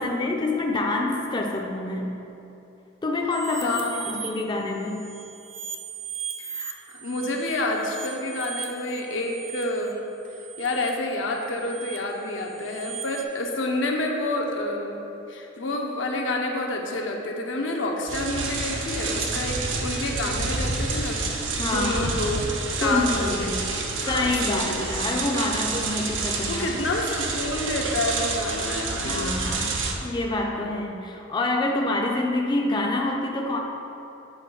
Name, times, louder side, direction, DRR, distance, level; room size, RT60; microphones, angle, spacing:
voice 1, 0.0-2.2 3.0-3.8 4.1-5.1 19.3-19.4 21.6-22.2 22.8-23.6 24.1-26.7 29.0-29.7 30.0-33.6, left 2 dB, 25° left, 1 dB, 0.4 m, -27 dB
sound 1, 3.3-4.3 4.7-13.2, right 7 dB, 30° right, 0.6 m, -38 dB
voice 2, 3.6-4.1 6.4-10.0 10.6-15.0 15.3-21.2 21.7-22.4 22.8-24.8 26.4-29.4, left 2 dB, 80° left, 1 dB, 0.7 m, -28 dB
sound 2, 18.1-29.9, right 3 dB, 75° right, 0.7 m, -29 dB
7.9 x 3.6 x 4.5 m, 2.9 s
head